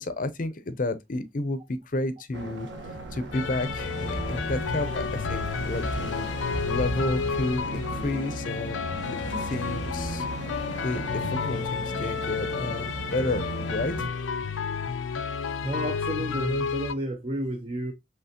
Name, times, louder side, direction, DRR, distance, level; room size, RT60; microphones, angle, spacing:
voice 1, 0.0-2.7 3.1-6.3 6.6-10.3 10.8-14.1, left 2 dB, 45° left, 0.6 m, -31 dB
sound 1, 2.3-14.1, right 2 dB, 70° right, 1.2 m, -38 dB
sound 2, 2.7-8.1, right 1 dB, 90° right, 1.0 m, -37 dB
sound 3, 3.3-16.9, left 5 dB, 90° left, 0.5 m, -31 dB
voice 2, 15.6-17.9, right 1 dB, 30° right, 0.5 m, -31 dB
5.6 x 3.3 x 2.8 m
head